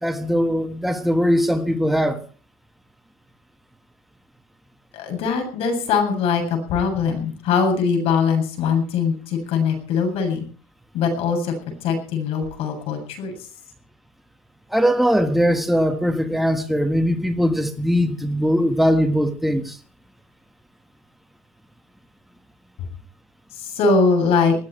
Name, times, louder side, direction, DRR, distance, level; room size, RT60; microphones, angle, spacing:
voice 1, 0.0-2.2 14.7-19.8, equal, ahead, 1.7 m, -20 dB
voice 2, 4.9-10.4 10.9-11.5 11.8-13.3 22.8-22.9 23.6-24.6, left 5 dB, 65° left, 7.8 m, -21 dB
20.5 x 15.0 x 4.6 m
cardioid pair, 125°, 11 cm